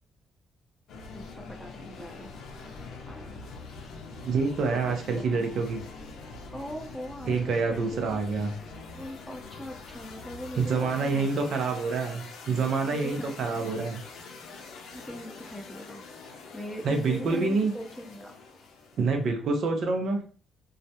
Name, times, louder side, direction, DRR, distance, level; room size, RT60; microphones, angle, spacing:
sound 1, 0.9-19.2, left 4 dB, 80° left, 0.5 m, -45 dB
voice 1, 1.1-2.3 3.1-3.5 4.9-5.5 6.5-8.2 8.9-11.5 12.9-13.7 14.9-16.0 16.5-18.3, equal, ahead, 1 dB, 0.6 m, -41 dB
voice 2, 4.2-5.8 7.3-8.5 10.6-14.0 16.8-17.7 19.0-20.2, right 4 dB, 65° right, 4 dB, 0.6 m, -27 dB
2.3 x 2.1 x 2.8 m, 0.41 s
cardioid pair, 90°, 0 cm